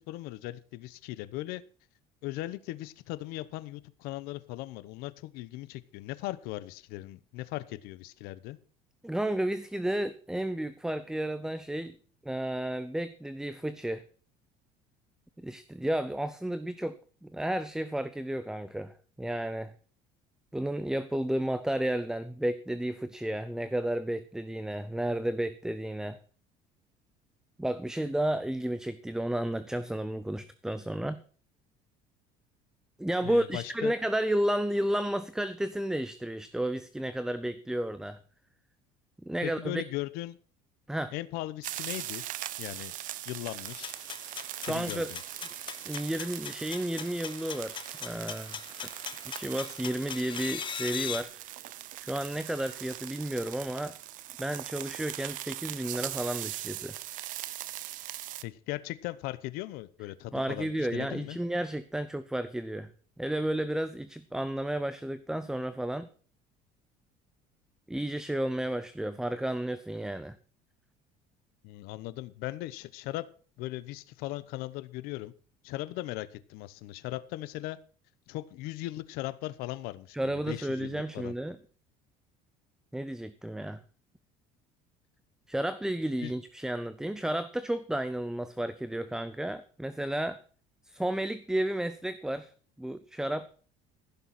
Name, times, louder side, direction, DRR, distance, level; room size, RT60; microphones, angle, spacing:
voice 1, 0.0-1.6 2.2-8.6 33.2-33.9 39.4-40.4 41.1-42.2 42.6-42.9 43.3-44.0 44.6-45.2 58.4-61.4 71.6-73.3 73.6-75.3 75.6-77.8 78.3-81.3 86.2-86.3, left 17 dB, 80° left, 1.0 m, -38 dB
voice 2, 9.0-12.0 12.2-14.0 15.4-19.7 20.5-26.2 27.6-31.2 33.0-38.2 39.2-39.8 40.9-41.1 44.6-45.1 45.9-48.6 49.2-51.5 52.0-54.0 54.4-57.0 60.3-62.9 63.2-66.1 67.9-70.4 80.1-81.6 82.9-83.8 85.5-90.4 90.8-92.5 92.8-93.5, right 1 dB, 5° right, 0.6 m, -32 dB
sound 1, 41.6-58.4, right 14 dB, 55° right, 0.8 m, -41 dB
sound 2, 43.6-51.2, left 7 dB, 30° left, 1.2 m, -41 dB
15.5 x 6.9 x 6.1 m
cardioid pair, 135°, 16 cm